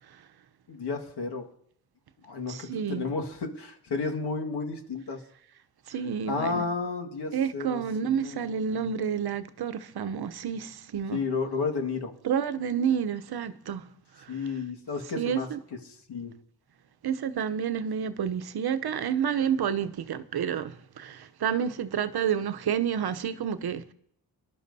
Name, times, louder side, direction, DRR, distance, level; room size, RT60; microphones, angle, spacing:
voice 1, 0.7-1.5 2.3-5.2 6.3-7.8 8.2-8.8 11.1-12.1 14.3-15.5 16.1-16.3, left 4 dB, 75° left, 1.9 m, -32 dB
voice 2, 2.5-3.0 5.9-6.6 7.3-11.2 12.2-13.9 14.2-14.4 15.1-15.6 17.0-23.9, right 8 dB, 70° right, 0.8 m, -29 dB
21.0 x 11.5 x 2.7 m
cardioid pair, 65°, 40 cm